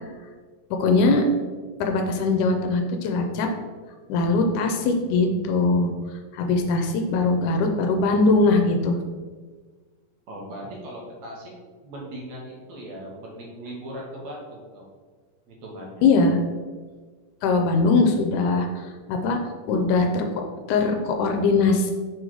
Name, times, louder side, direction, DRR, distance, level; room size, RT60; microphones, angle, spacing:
voice 1, 0.7-1.3 1.8-3.5 4.1-5.9 6.3-9.0 16.0-16.4 17.4-19.4 19.7-21.9, left 3 dB, 80° left, 4 dB, 2.0 m, -21 dB
voice 2, 10.3-11.5 11.8-14.8 15.5-16.1, right 1 dB, 65° right, -3 dB, 2.1 m, -38 dB
6.1 x 3.9 x 4.6 m, 1.4 s
omnidirectional pair, 3.8 m